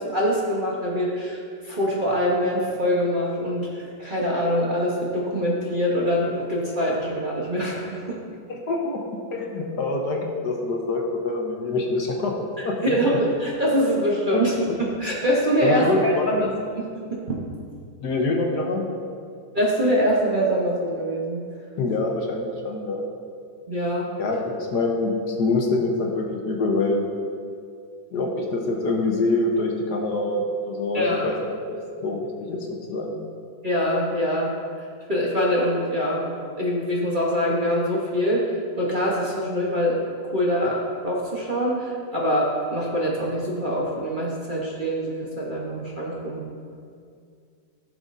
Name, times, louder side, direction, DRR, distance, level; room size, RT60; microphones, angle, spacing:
voice 1, 0.0-8.2 12.6-17.4 19.5-21.4 23.7-24.1 30.9-31.2 33.6-36.2 36.6-46.4, equal, 35° right, -5 dB, 1.0 m, -24 dB
voice 2, 8.7-9.0 9.3-12.3 12.6-13.0 14.3-14.4 15.6-16.3 18.0-18.8 21.8-23.0 24.2-27.0 28.1-31.4 31.7-32.2 32.5-32.6 32.9-33.2, left 2 dB, 65° left, 0 dB, 1.5 m, -25 dB
15.5 x 6.2 x 2.7 m, 2.3 s
omnidirectional pair, 2.0 m